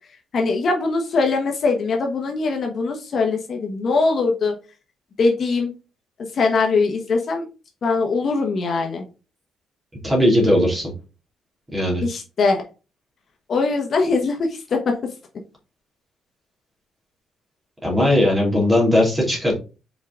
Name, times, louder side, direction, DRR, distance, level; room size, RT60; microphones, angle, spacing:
voice 1, 0.3-4.5 5.2-5.7 6.3-7.4 7.8-9.0 12.0-12.7 13.5-15.1, left 4 dB, 45° left, 3 dB, 1.1 m, -21 dB
voice 2, 10.0-10.9 11.7-12.0 17.8-19.5, left 1 dB, 15° right, -2 dB, 2.6 m, -18 dB
5.5 x 4.8 x 3.7 m, 0.32 s
cardioid pair, 150°, 0 cm